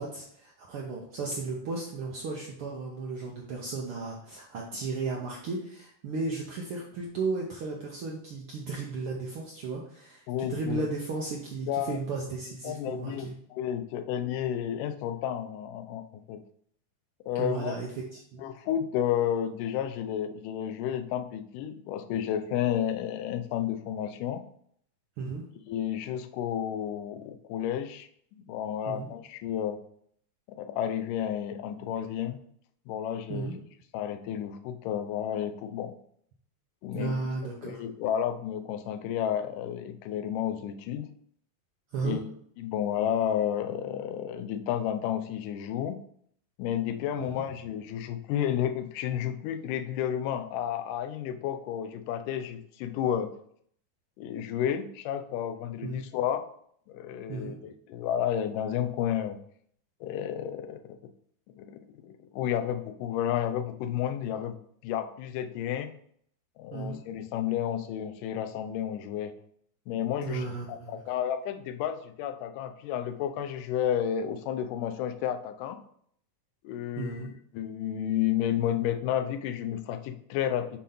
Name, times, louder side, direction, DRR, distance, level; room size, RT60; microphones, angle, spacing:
voice 1, 0.0-13.3 17.4-18.4 25.2-25.4 28.9-29.1 33.3-33.5 36.9-37.8 41.9-42.2 47.2-47.3 55.8-56.0 57.3-57.5 66.7-67.0 70.2-71.0 77.0-77.3, right 3 dB, 80° right, -1 dB, 1.2 m, -35 dB
voice 2, 10.3-10.8 11.7-12.0 12.6-16.4 17.3-17.8 18.4-24.4 25.7-28.1 28.4-29.8 30.5-32.4 32.9-33.6 33.9-35.9 36.8-37.2 37.6-41.1 42.0-42.3 42.6-46.0 46.6-53.3 54.2-56.5 56.9-59.4 60.0-61.0 61.6-64.5 64.8-65.9 66.6-69.4 69.9-75.8 76.6-77.3 77.5-80.8, left 10 dB, 90° left, 10 dB, 2.2 m, -31 dB
7.3 x 4.2 x 3.8 m, 0.65 s
omnidirectional pair, 3.6 m